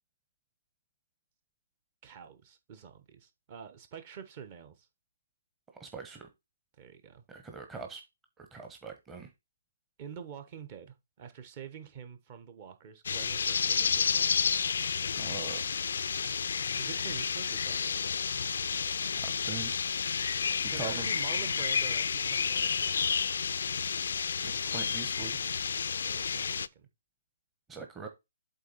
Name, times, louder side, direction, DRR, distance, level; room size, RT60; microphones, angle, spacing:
voice 1, 2.0-4.9 6.8-7.2 10.0-14.3 16.8-18.1 20.7-23.0 26.0-26.9, right 7 dB, 35° right, 1.2 m, -47 dB
voice 2, 5.8-6.3 7.3-8.0 8.4-9.3 15.1-15.6 19.2-19.7 20.6-21.1 24.4-25.4 27.7-28.1, right 5 dB, 10° right, 1.0 m, -42 dB
sound 1, 13.0-26.7, left 6 dB, 60° left, 0.4 m, -31 dB
8.2 x 3.8 x 4.1 m
figure-of-eight pair, 140°, 0 cm